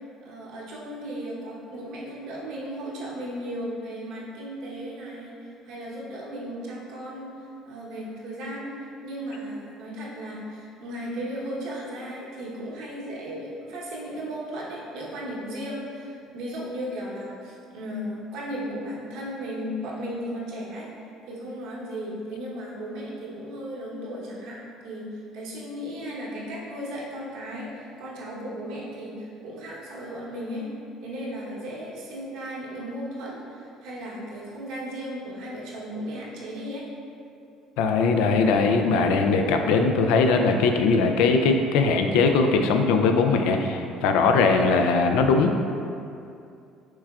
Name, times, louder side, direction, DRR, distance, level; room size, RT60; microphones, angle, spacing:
voice 1, 0.2-7.3 7.6-8.7 9.0-20.9 21.3-30.7 31.0-36.8, equal, 70° right, -5 dB, 1.0 m, -35 dB
voice 2, 37.8-45.5, left 4 dB, 85° left, 5 dB, 0.4 m, -20 dB
6.0 x 3.4 x 2.4 m, 2.5 s
cardioid pair, 155°, 0 cm